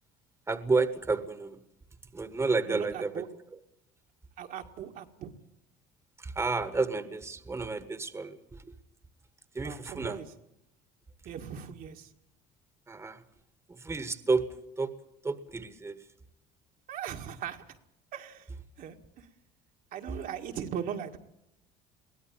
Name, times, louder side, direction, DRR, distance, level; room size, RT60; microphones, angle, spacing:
voice 1, 0.5-1.6 2.1-3.2 3.5-3.6 6.2-8.7 9.5-10.2 12.9-13.2 13.7-14.5 14.8-14.9 15.2-16.0, right 3 dB, 15° right, 11 dB, 1.5 m, -31 dB
voice 2, 2.7-3.3 4.4-5.3 9.6-10.3 11.3-12.1 16.9-17.6 18.1-18.5 18.8-19.3 19.9-21.2, right 9 dB, 60° right, 4 dB, 2.0 m, -39 dB
22.5 x 16.5 x 8.8 m, 0.83 s
supercardioid pair, 100°, 16 cm